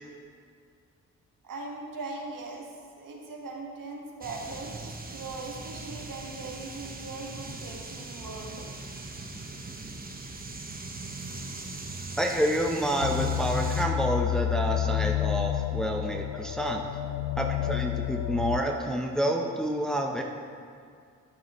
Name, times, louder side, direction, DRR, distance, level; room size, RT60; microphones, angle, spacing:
voice 1, 1.4-4.7 5.1-8.7, right 3 dB, 55° right, 0 dB, 1.8 m, -40 dB
sound 1, 4.2-13.9, right 3 dB, 25° right, 1.2 m, -40 dB
voice 2, 12.2-16.8 17.4-20.2, equal, ahead, 2 dB, 0.9 m, -28 dB
sound 2, 13.0-18.6, left 12 dB, 80° left, 0.5 m, -29 dB
12.0 x 6.6 x 3.2 m, 2.2 s
hypercardioid pair, 45°, 38 cm